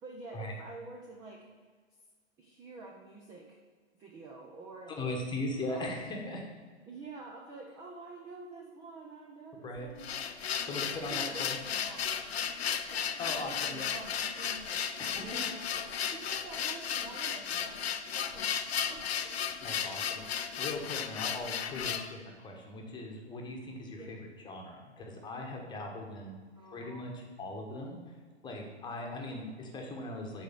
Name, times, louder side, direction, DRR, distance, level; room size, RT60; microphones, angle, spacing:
voice 1, 0.0-1.4 2.4-3.6 4.0-5.1 5.7-6.0 6.9-10.1 10.6-12.2 12.9-14.9 15.1-19.4 24.0-24.2 26.5-27.2 29.3-29.4, right 3 dB, 10° right, 0 dB, 0.4 m, -48 dB
voice 2, 4.9-6.4 9.6-9.9 10.7-11.6 13.2-13.9 15.0-15.6 19.6-20.2 20.6-24.2 24.4-26.3 26.7-28.0 28.4-30.4, left 2 dB, 15° left, 1 dB, 1.2 m, -39 dB
sound 1, 9.8-22.1, left 8 dB, 65° left, 0.6 m, -35 dB
6.9 x 4.8 x 6.8 m, 1.5 s
figure-of-eight pair, 115°, 35 cm